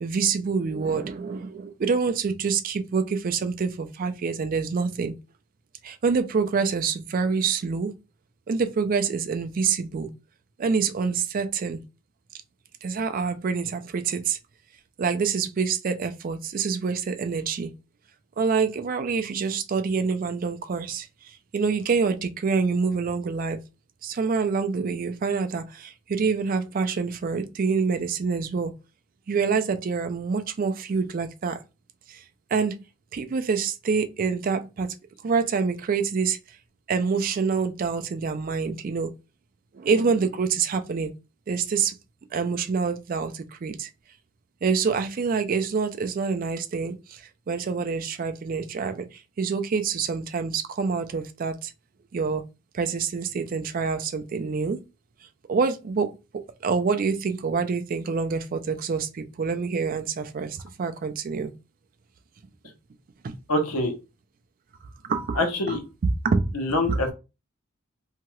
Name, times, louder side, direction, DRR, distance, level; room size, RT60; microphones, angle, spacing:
voice 1, 0.0-5.1 5.8-7.9 8.5-10.1 10.6-11.8 12.8-14.4 15.0-17.7 18.4-23.6 24.0-28.7 29.3-31.6 32.1-32.2 32.5-32.8 33.1-34.9 35.2-36.4 36.9-39.1 39.7-41.1 41.5-42.0 42.3-43.9 44.6-51.7 52.1-52.4 52.7-54.8 55.5-56.1 56.6-61.5 63.2-63.3 65.0-65.4 65.7-65.8 66.2-66.5 66.9-67.0, right 5 dB, 40° right, 0.3 m, -26 dB
voice 2, 63.5-63.9 65.4-65.8 66.5-67.1, left 1 dB, 80° left, 0.9 m, -24 dB
2.8 x 2.3 x 3.0 m
head